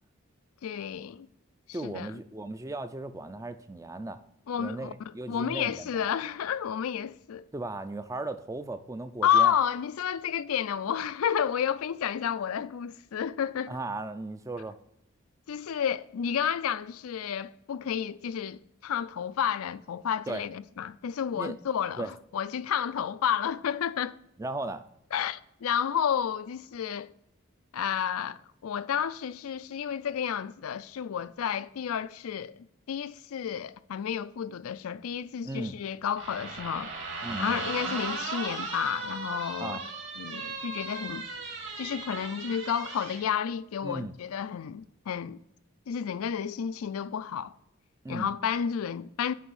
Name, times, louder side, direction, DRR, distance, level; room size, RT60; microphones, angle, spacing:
voice 1, 0.6-1.3 1.8-2.1 4.5-7.4 9.2-13.8 15.5-24.2 25.1-27.1 27.7-36.9 37.4-39.8 40.2-41.3 41.8-45.4 45.9-47.5 48.1-49.3, left 8 dB, 85° left, 0.4 m, -31 dB
voice 2, 1.7-4.2 4.6-6.1 7.5-9.5 13.7-14.8 20.3-20.4 21.4-21.5 22.0-22.1 24.4-24.8 35.4-35.8 37.2-37.6 39.6-39.8 43.8-44.1 48.0-48.3, right 2 dB, 15° right, 0.3 m, -36 dB
sound 1, 36.2-43.2, right 3 dB, 55° right, 2.1 m, -37 dB
9.2 x 3.4 x 6.2 m
head